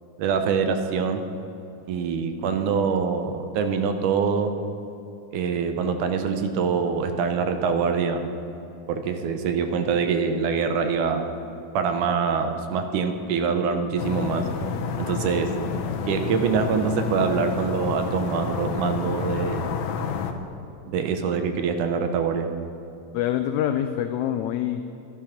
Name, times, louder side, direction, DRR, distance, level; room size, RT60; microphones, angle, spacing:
voice 1, 0.2-1.2 1.9-4.5 5.3-8.3 8.9-11.3 11.7-14.5 15.0-15.5 16.1-19.7 20.9-22.5, right 6 dB, 75° right, 7 dB, 2.2 m, -24 dB
sound 1, 14.0-20.3, left 6 dB, 70° left, 1.9 m, -30 dB
voice 2, 23.1-24.9, left 10 dB, 85° left, 8 dB, 1.6 m, -25 dB
12.0 x 11.5 x 5.8 m, 3.0 s
omnidirectional pair, 3.8 m